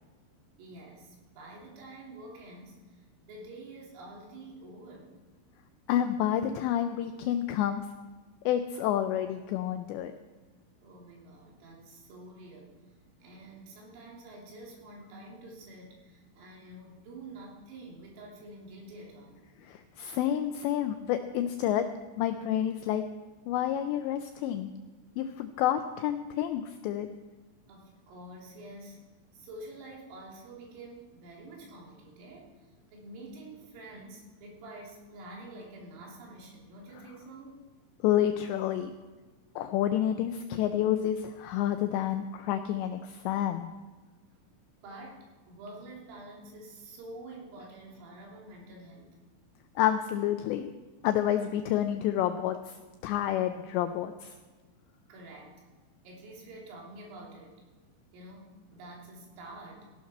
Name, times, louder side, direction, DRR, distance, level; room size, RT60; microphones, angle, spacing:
voice 1, 0.6-5.3 10.8-12.8 13.2-19.4 27.7-29.0 29.3-37.6 44.8-49.2 55.1-55.6 56.1-57.6 58.1-59.9, right 2 dB, 90° right, -2 dB, 5.6 m, -48 dB
voice 2, 5.9-7.9 8.5-10.1 19.6-21.9 22.2-23.0 23.5-24.7 25.2-27.1 38.0-38.9 39.6-43.7 49.8-50.7 51.0-52.8 53.0-54.3, left 11 dB, 85° left, 8 dB, 2.5 m, -29 dB
15.5 x 11.5 x 4.3 m, 1.3 s
omnidirectional pair, 5.7 m